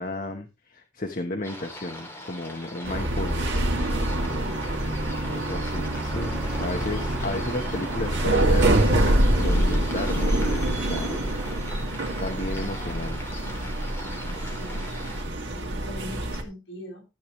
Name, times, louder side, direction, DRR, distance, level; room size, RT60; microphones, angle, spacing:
voice 1, 0.0-3.6 5.3-11.2 12.2-13.2, left 2 dB, 45° left, 5 dB, 1.1 m, -33 dB
sound 1, 1.4-15.2, left 1 dB, 10° left, 2.8 m, -41 dB
sound 2, 2.8-16.4, right 1 dB, 60° right, 2.6 m, -25 dB
sound 3, 3.1-11.5, equal, 5° right, 1.0 m, -39 dB
voice 2, 4.2-4.7 14.3-14.9 15.4-17.0, left 1 dB, 65° left, 0 dB, 7.8 m, -42 dB
14.0 x 8.7 x 3.2 m, 0.26 s
head